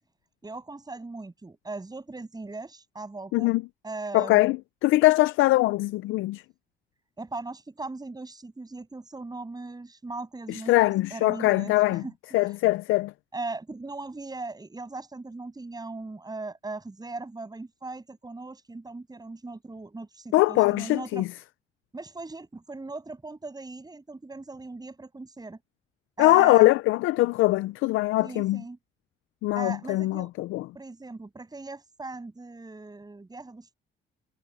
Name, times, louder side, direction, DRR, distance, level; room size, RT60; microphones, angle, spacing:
voice 1, 0.4-3.5 3.8-4.5 7.2-12.1 13.3-21.3 21.9-25.6 26.2-26.8 28.2-28.8 29.5-30.3 30.7-33.7, right 3 dB, 20° right, 7.8 m, -39 dB
voice 2, 4.1-4.6 4.8-6.4 10.5-12.0 12.3-13.1 20.3-21.3 26.2-28.6 29.4-30.7, left 18 dB, 90° left, 0.4 m, -22 dB
cardioid pair, 90°, 20 cm